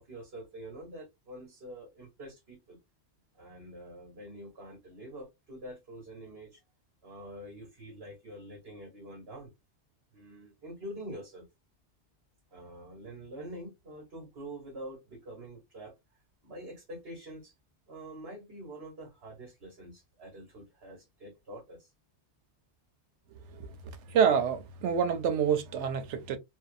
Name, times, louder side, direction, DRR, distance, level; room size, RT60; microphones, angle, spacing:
voice 1, 0.0-2.8 3.3-6.6 7.0-9.5 10.1-11.5 12.5-15.9 16.4-17.5 17.9-21.9, right 1 dB, 65° right, 1.2 m, -46 dB
voice 2, 23.3-23.7 24.1-26.4, right 7 dB, 85° right, 0.9 m, -27 dB
2.6 x 2.0 x 2.4 m
omnidirectional pair, 1.1 m